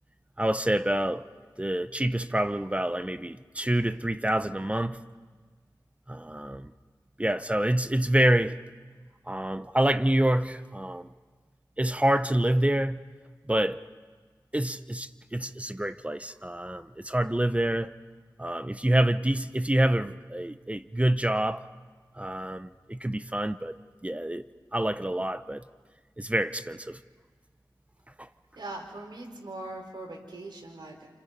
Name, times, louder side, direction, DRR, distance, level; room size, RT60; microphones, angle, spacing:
voice 1, 0.4-1.3 1.6-5.0 6.1-6.7 7.2-8.5 9.3-11.1 11.8-13.0 13.5-13.8 14.5-17.9 18.4-21.7 22.2-24.4 24.7-25.6 26.2-27.0 28.2-28.3, right 1 dB, 15° right, 0.9 m, -27 dB
voice 2, 28.6-31.1, right 2 dB, 85° right, 5.1 m, -41 dB
29.5 x 29.0 x 5.4 m
wide cardioid pair, 55°, 8 cm